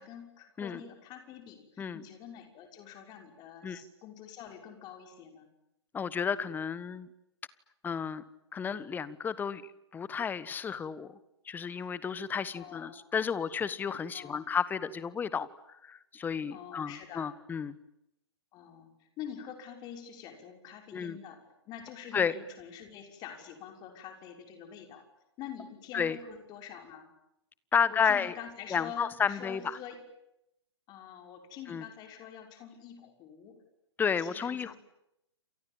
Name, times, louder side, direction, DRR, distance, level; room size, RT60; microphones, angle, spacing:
voice 1, 0.0-5.5 12.5-13.0 14.1-14.4 16.5-17.3 18.5-25.0 25.4-27.1 27.9-30.0 30.9-33.6 34.0-34.8, left 9 dB, 30° left, 5 dB, 6.0 m, -46 dB
voice 2, 5.9-7.1 7.8-8.2 8.5-9.6 9.9-11.1 11.5-17.8 20.9-21.2 22.1-22.3 25.9-26.2 27.7-28.3 28.7-29.8 31.7-31.8 34.0-34.7, left 6 dB, 10° left, 17 dB, 1.3 m, -32 dB
29.5 x 27.5 x 7.3 m, 0.84 s
figure-of-eight pair, 115°, 15 cm